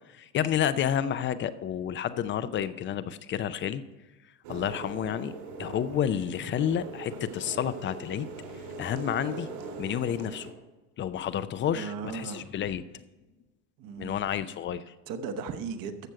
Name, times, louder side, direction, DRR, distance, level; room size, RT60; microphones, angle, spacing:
voice 1, 0.1-3.8 4.5-5.3 5.6-8.3 8.8-9.5 9.8-10.5 11.0-13.0 14.0-14.9, left 9 dB, 25° left, 14 dB, 0.5 m, -30 dB
sound 1, 4.4-10.5, right 3 dB, 60° right, 3.9 m, -41 dB
voice 2, 11.7-12.5 13.8-14.2 15.1-16.1, right 5 dB, 45° right, 8 dB, 1.2 m, -36 dB
14.5 x 6.2 x 4.7 m, 1.1 s
hypercardioid pair, 100°, 47 cm